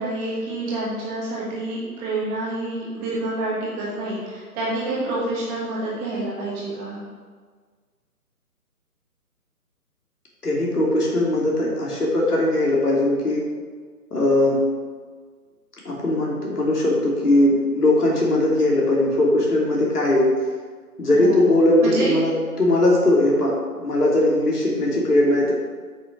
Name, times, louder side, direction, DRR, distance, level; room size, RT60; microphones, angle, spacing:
voice 1, 0.0-7.0 21.1-21.5 21.8-22.1, right 2 dB, 10° right, -6 dB, 1.4 m, -28 dB
voice 2, 10.4-13.4 14.1-14.6 15.8-20.3 21.0-22.3 22.6-25.5, left 1 dB, 75° left, -3 dB, 2.9 m, -19 dB
8.6 x 6.0 x 6.1 m, 1.5 s
figure-of-eight pair, 150°, 46 cm